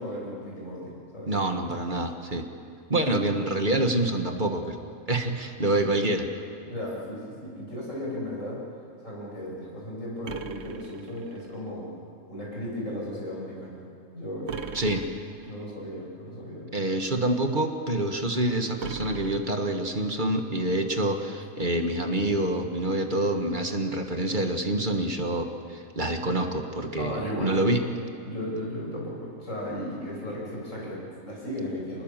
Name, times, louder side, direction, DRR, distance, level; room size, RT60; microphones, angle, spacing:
voice 1, 0.0-1.3 6.7-8.6 9.0-11.9 12.3-13.8 14.1-14.7 15.4-16.7 27.0-27.5 28.2-32.0, equal, 70° left, -4 dB, 8.1 m, -35 dB
voice 2, 1.3-2.5 2.9-6.2 14.7-15.0 16.7-27.8, right 1 dB, 35° right, 5 dB, 1.7 m, -27 dB
sound 1, 10.2-11.6 14.5-15.6 18.8-20.1, right 6 dB, 55° right, 1.1 m, -40 dB
26.5 x 20.5 x 7.5 m, 2.4 s
omnidirectional pair, 1.4 m